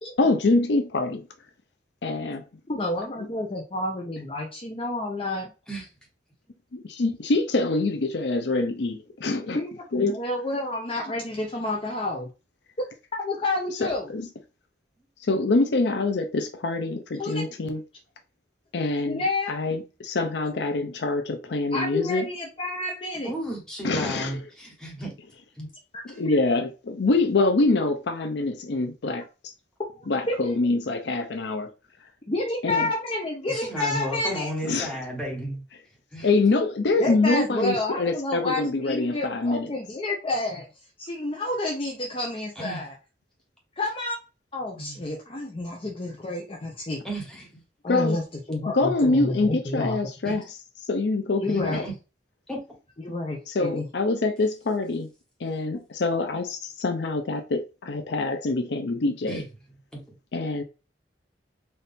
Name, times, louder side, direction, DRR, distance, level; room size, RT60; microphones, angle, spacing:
voice 1, 0.2-1.3 2.0-2.4 6.7-9.6 9.9-10.2 13.8-14.3 15.2-17.8 18.7-19.2 19.5-22.3 23.8-24.4 26.0-26.7 27.0-29.2 30.1-31.7 32.6-32.9 34.6-34.9 36.2-39.7 47.9-48.2 48.7-50.4 50.9-51.8 53.5-55.1 55.4-59.4 60.3-60.6, left 3 dB, 70° left, 0.6 m, -25 dB
voice 2, 2.7-5.5 9.5-12.3 13.2-14.1 17.2-17.5 19.1-19.5 21.7-23.3 25.9-26.0 29.9-30.5 32.3-34.5 37.0-40.7 41.0-42.9 43.8-44.2 44.5-47.0 47.8-48.2 48.5-50.0 51.4-51.8 53.0-53.9, left 2 dB, 30° left, 0.7 m, -29 dB
voice 3, 23.2-25.2 25.6-25.7 26.1-26.2 33.4-35.6 36.1-36.3 42.6-42.8 44.7-45.0 47.0-47.5 50.2-50.4 51.5-51.9 52.5-52.6 53.0-53.1 59.3-59.4 59.9-60.0, right 1 dB, 5° left, 1.4 m, -33 dB
4.2 x 2.6 x 3.5 m
head